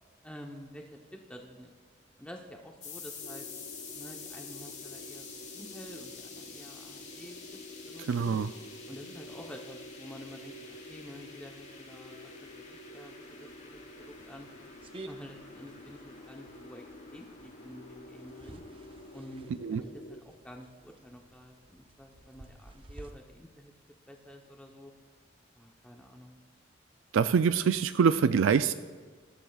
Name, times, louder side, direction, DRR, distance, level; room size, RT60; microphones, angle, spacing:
voice 1, 0.2-1.0 1.3-1.7 2.2-3.5 3.9-7.4 7.9-8.4 8.9-13.1 13.4-14.5 15.0-16.8 17.1-18.6 19.1-23.7 24.1-24.9 25.6-26.4, equal, 5° left, 1 dB, 0.8 m, -49 dB
sound 1, 2.8-19.2, left 5 dB, 40° left, 1.6 m, -49 dB
sound 2, 3.2-20.2, left 1 dB, 60° left, 0.9 m, -49 dB
voice 2, 8.1-8.5 19.6-19.8 27.1-28.7, right 6 dB, 90° right, 11 dB, 0.4 m, -25 dB
sound 3, 13.5-23.1, right 2 dB, 30° right, 0.7 m, -53 dB
20.5 x 13.5 x 2.4 m, 1.5 s
head